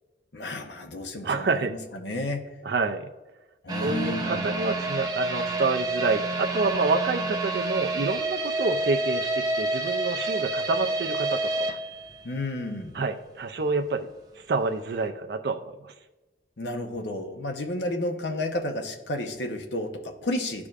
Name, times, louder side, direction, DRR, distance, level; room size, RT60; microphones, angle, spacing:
voice 1, 0.3-2.4 3.6-4.6 12.2-13.0 16.6-20.7, left 1 dB, 80° left, 4 dB, 0.9 m, -32 dB
voice 2, 1.2-1.7 2.6-3.1 3.8-11.8 12.9-14.1 14.4-15.9, right 3 dB, 65° right, 5 dB, 0.5 m, -28 dB
sound 1, 3.7-12.7 13.0-13.1 13.6-13.7, right 2 dB, 20° right, 0.7 m, -29 dB
12.0 x 4.9 x 2.4 m, 1.1 s
head